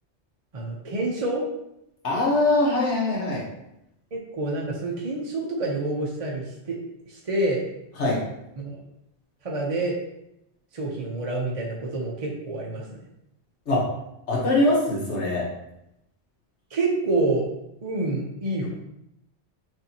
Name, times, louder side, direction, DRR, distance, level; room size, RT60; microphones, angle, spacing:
voice 1, 0.5-1.4 4.1-6.8 7.1-7.6 8.6-8.8 9.4-10.0 10.7-13.0 16.7-17.5 17.8-18.7, right 2 dB, 40° right, -3 dB, 0.7 m, -27 dB
voice 2, 2.0-3.4 8.0-8.2 13.7-13.9 14.3-15.4, left 2 dB, 75° left, -5 dB, 1.6 m, -22 dB
6.1 x 2.7 x 2.9 m, 0.84 s
omnidirectional pair, 1.2 m